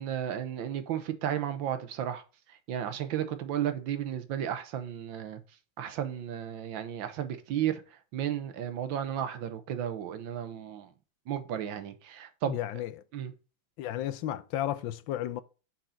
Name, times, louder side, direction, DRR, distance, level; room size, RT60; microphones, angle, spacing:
voice 1, 0.0-2.2 2.5-5.4 5.8-7.8 8.1-10.9 11.3-12.6 13.1-13.3, right 10 dB, 75° right, 1.6 m, -33 dB
voice 2, 12.5-12.9 13.8-15.4, left 12 dB, 80° left, 1.3 m, -33 dB
6.4 x 4.3 x 5.6 m
omnidirectional pair, 2.2 m